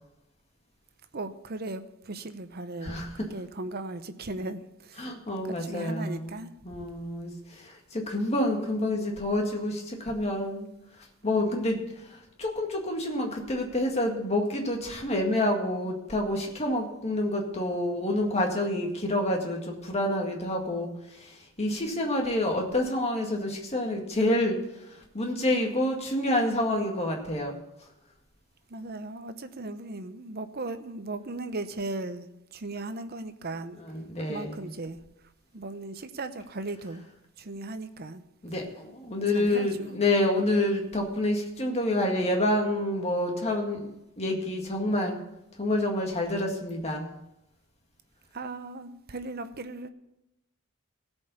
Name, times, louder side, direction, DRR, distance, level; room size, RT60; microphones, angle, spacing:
voice 1, 1.1-3.0 3.3-5.1 5.5-6.5 28.7-32.3 32.5-33.8 34.3-35.0 35.5-37.0 37.4-38.2 39.3-40.0 48.3-49.9, right 2 dB, 45° right, 0.8 m, -37 dB
voice 2, 5.0-6.3 6.6-10.7 11.2-11.8 12.4-20.9 21.6-24.6 25.1-27.6 33.8-34.7 38.4-43.9 44.2-45.2 45.6-47.1, left 1 dB, 30° left, 1.9 m, -28 dB
16.0 x 5.4 x 7.0 m
head